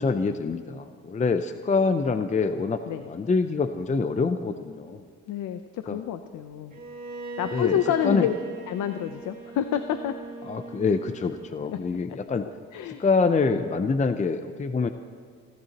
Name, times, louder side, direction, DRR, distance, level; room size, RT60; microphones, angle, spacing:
voice 1, 0.0-2.8 3.1-5.0 5.9-6.0 7.5-8.3 10.5-12.5 13.0-14.9, left 4 dB, 25° left, 9 dB, 0.6 m, -25 dB
voice 2, 5.3-6.8 7.4-8.3 8.7-10.2 11.6-12.2 12.7-13.0, left 10 dB, 75° left, 9 dB, 0.7 m, -28 dB
Bowed string instrument, 6.7-11.7, right 2 dB, 30° right, 2.5 m, -40 dB
28.5 x 12.5 x 2.9 m, 2.1 s
cardioid pair, 90°, 30 cm